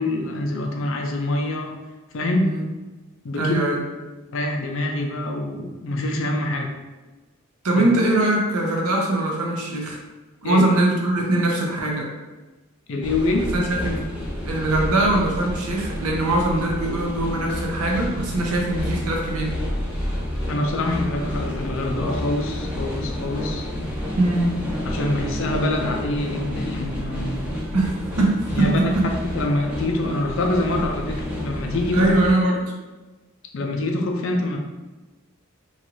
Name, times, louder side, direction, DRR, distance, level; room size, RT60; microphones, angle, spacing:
voice 1, 0.0-1.7 2.1-2.5 3.2-3.6 4.3-6.7 7.7-7.8 10.4-10.7 12.9-13.5 20.5-23.7 24.8-27.6 28.5-32.1 33.5-34.6, left 2 dB, 60° left, 2 dB, 0.5 m, -25 dB
voice 2, 3.3-3.8 7.6-10.0 10.4-12.1 13.5-14.1 14.4-19.6 24.2-24.6 27.7-29.1 31.9-32.6, right 2 dB, 85° right, -1 dB, 0.7 m, -22 dB
sound 1, 13.0-32.3, left 1 dB, 5° right, 0.4 m, -30 dB
3.0 x 2.4 x 3.0 m, 1.2 s
head